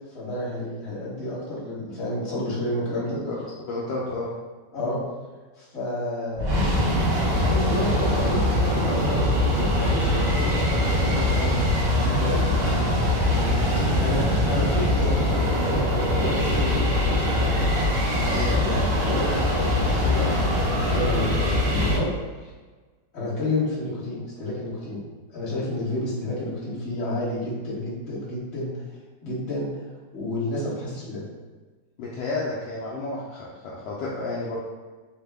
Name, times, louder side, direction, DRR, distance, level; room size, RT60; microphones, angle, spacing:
voice 1, 0.1-3.2 4.7-5.0 5.6-12.5 13.3-13.5 14.0-17.5 18.1-22.1 22.4-22.5 23.1-28.7 29.2-29.9 30.1-31.2, left 1 dB, 40° left, -8 dB, 1.4 m, -30 dB
voice 2, 3.7-4.3 18.3-18.5 32.0-34.6, left 3 dB, 75° left, -6 dB, 1.1 m, -31 dB
sound 1, 6.4-22.0, left 1 dB, 70° right, 0.5 m, -22 dB
3.3 x 2.1 x 3.4 m, 1.3 s
omnidirectional pair, 2.0 m